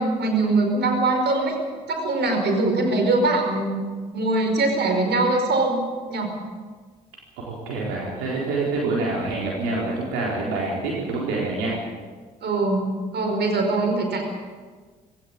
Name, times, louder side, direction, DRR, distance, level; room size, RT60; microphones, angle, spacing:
voice 1, 0.0-1.5 1.9-3.8 4.1-5.8 6.1-6.3 12.4-12.8 13.1-14.2, right 2 dB, 55° right, 4 dB, 5.1 m, -22 dB
voice 2, 7.5-11.8, right 3 dB, 75° right, -4 dB, 4.2 m, -26 dB
19.0 x 17.0 x 8.9 m, 1.5 s
hypercardioid pair, 45°, 21 cm